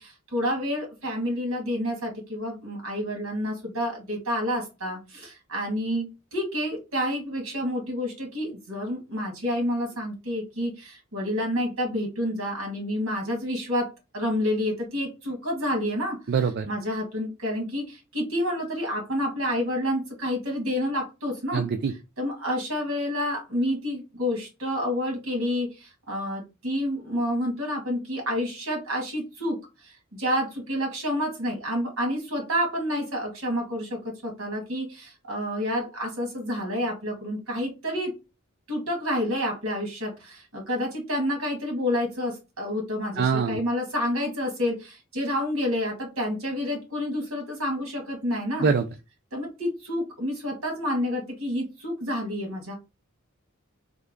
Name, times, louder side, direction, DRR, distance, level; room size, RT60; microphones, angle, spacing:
voice 1, 0.0-13.9 14.1-16.2 16.7-21.6 22.2-29.6 29.8-38.1 38.7-48.7 49.3-52.7, equal, 70° right, 1 dB, 1.8 m, -29 dB
voice 2, 16.3-16.7 21.5-21.9 43.2-43.6 48.6-48.9, right 5 dB, 55° right, 7 dB, 0.3 m, -23 dB
3.5 x 2.2 x 3.6 m, 0.27 s
head